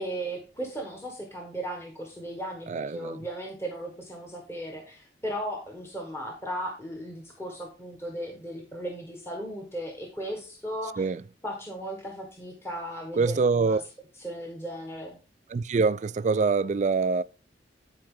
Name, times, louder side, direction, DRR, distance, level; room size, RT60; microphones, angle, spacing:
voice 1, 0.0-11.1 11.4-13.8 14.2-15.2, right 1 dB, 15° left, 1.3 m, -36 dB
voice 2, 2.7-3.2 11.0-11.2 13.1-13.8 15.5-17.2, right 4 dB, 40° right, 0.3 m, -25 dB
10.5 x 4.6 x 3.7 m
head